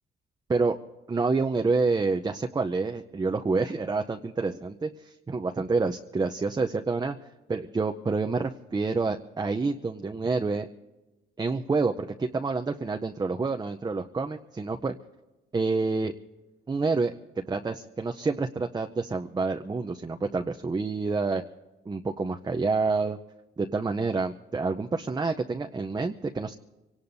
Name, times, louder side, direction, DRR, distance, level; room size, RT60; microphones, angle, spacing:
voice 1, 1.1-7.2 7.5-10.7 11.4-15.0 15.5-16.1 16.7-21.4 21.9-23.2 23.6-26.5, right 4 dB, 20° right, 4 dB, 0.6 m, -28 dB
24.5 x 18.5 x 2.7 m, 1.1 s
cardioid pair, 90°, 20 cm